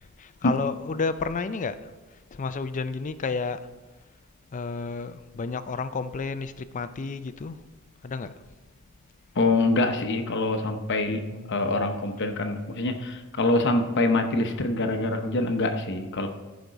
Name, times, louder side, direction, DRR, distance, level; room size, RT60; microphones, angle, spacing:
voice 1, 0.0-1.8 2.3-3.6 4.5-7.6 8.0-8.3 11.3-11.6, left 4 dB, 35° left, 0.4 m, -31 dB
voice 2, 9.4-16.3, left 2 dB, 55° left, 0.8 m, -25 dB
14.5 x 5.2 x 4.0 m
head